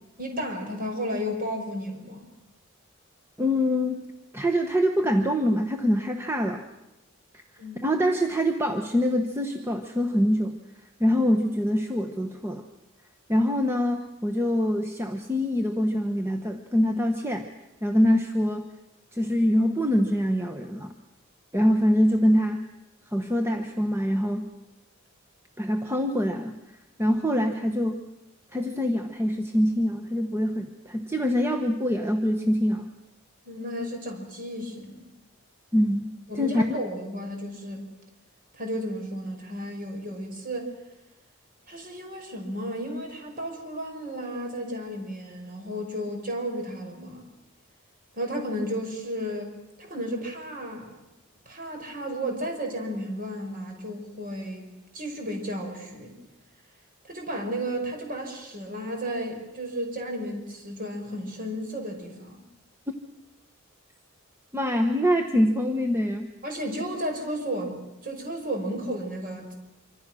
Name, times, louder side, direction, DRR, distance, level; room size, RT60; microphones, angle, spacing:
voice 1, 0.2-2.3 7.6-7.9 33.4-35.1 36.3-37.9 38.5-40.7 41.7-47.3 48.1-49.5 49.8-51.0 51.5-54.7 54.9-56.2 57.0-62.4 66.4-69.5, equal, 40° right, 3 dB, 5.6 m, -33 dB
voice 2, 3.4-6.7 7.3-7.4 7.8-10.6 11.0-12.6 13.3-17.5 17.8-18.7 19.1-20.9 21.5-22.7 23.1-24.5 25.6-26.6 27.0-28.0 28.5-32.9 35.7-36.8 64.5-66.3, equal, 10° right, 4 dB, 1.1 m, -24 dB
26.0 x 25.5 x 6.3 m, 0.97 s
head